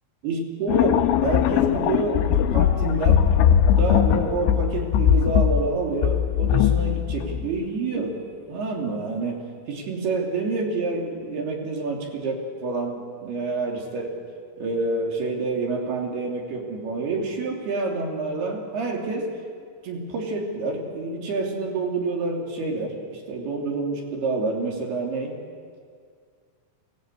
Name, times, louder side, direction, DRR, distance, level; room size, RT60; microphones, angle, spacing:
voice 1, 0.2-3.3 3.8-8.2 8.5-14.2 14.6-19.3 19.8-25.4, right 3 dB, 55° right, 0 dB, 4.6 m, -28 dB
sound 1, 0.7-7.6, left 9 dB, 80° left, 3.1 m, -20 dB
24.5 x 19.0 x 8.2 m, 2.1 s
omnidirectional pair, 5.8 m